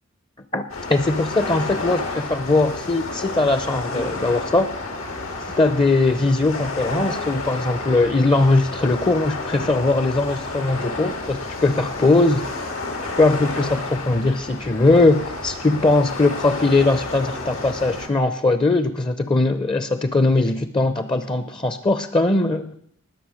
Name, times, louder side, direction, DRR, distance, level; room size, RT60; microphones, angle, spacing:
voice 1, 0.5-4.7 5.6-12.7 13.0-22.7, left 2 dB, 25° left, 11 dB, 0.6 m, -20 dB
sh puget sound blustery november day, 0.7-18.1, left 3 dB, 85° left, 2.6 m, -31 dB
19.5 x 6.7 x 6.4 m, 0.68 s
head